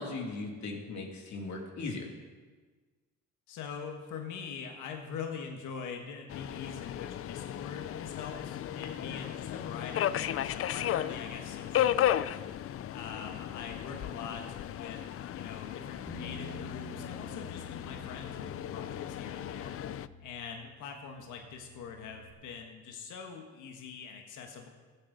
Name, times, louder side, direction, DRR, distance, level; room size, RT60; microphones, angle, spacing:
voice 1, 0.0-2.1, left 3 dB, 65° left, 1 dB, 2.6 m, -38 dB
voice 2, 3.5-12.4 12.9-19.7 20.2-24.7, left 6 dB, 90° left, 3 dB, 1.4 m, -43 dB
Subway metro underground, 6.3-20.1, left 11 dB, 50° left, 0.4 m, -35 dB
Bass guitar, 16.1-22.3, left 2 dB, 20° left, 1.5 m, -49 dB
18.5 x 8.0 x 4.0 m, 1.4 s
cardioid pair, 90°, 30 cm